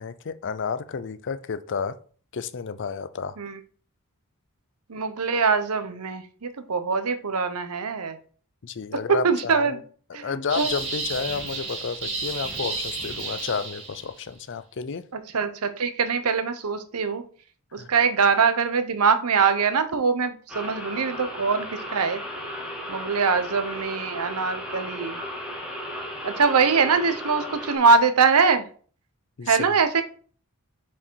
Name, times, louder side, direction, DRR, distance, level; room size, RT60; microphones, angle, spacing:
voice 1, 0.0-1.9 2.3-3.4 8.6-9.8 10.2-15.0 17.8-17.9 29.4-29.8, left 5 dB, 55° left, 13 dB, 0.5 m, -31 dB
voice 2, 4.9-8.2 9.1-9.8 10.1-10.7 15.1-17.2 17.7-22.2 22.9-25.2 26.2-28.7 29.5-30.0, right 5 dB, 80° right, 10 dB, 0.8 m, -23 dB
sound 1, 10.5-14.2, right 3 dB, 60° right, 3.2 m, -32 dB
sound 2, 20.5-27.8, equal, 5° right, 1.5 m, -35 dB
5.8 x 4.9 x 4.6 m, 0.43 s
head